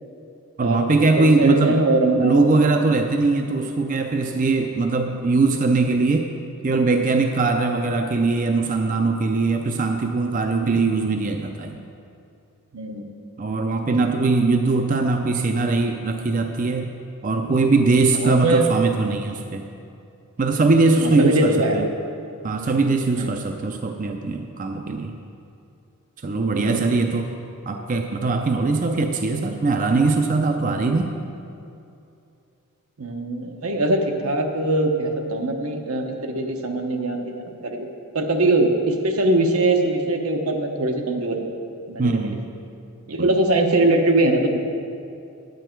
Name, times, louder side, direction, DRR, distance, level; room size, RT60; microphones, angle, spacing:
voice 1, 0.6-1.8 2.1-6.3 6.6-11.8 13.4-16.9 17.2-19.7 20.4-21.9 22.4-25.2 26.2-27.3 27.7-31.2 42.0-42.5 43.2-43.3, right 3 dB, 35° right, 4 dB, 0.4 m, -21 dB
voice 2, 1.2-2.3 5.1-5.2 10.6-10.8 12.7-13.1 18.1-18.7 21.0-21.9 23.2-23.3 26.6-26.8 33.0-37.9 38.1-41.4 41.9-42.4 43.1-44.6, right 2 dB, 80° right, 3 dB, 1.0 m, -22 dB
9.9 x 9.1 x 4.5 m, 2.6 s
head